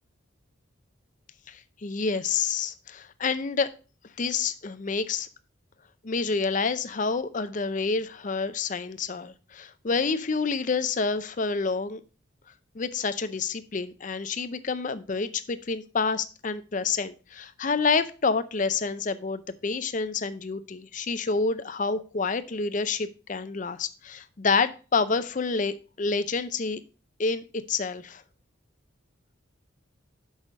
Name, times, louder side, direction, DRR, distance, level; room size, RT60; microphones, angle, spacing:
voice 1, 1.5-3.7 4.2-5.3 6.0-12.0 12.7-26.8 27.2-28.2, left 4 dB, 40° left, 12 dB, 0.5 m, -28 dB
6.4 x 5.6 x 5.1 m, 0.35 s
head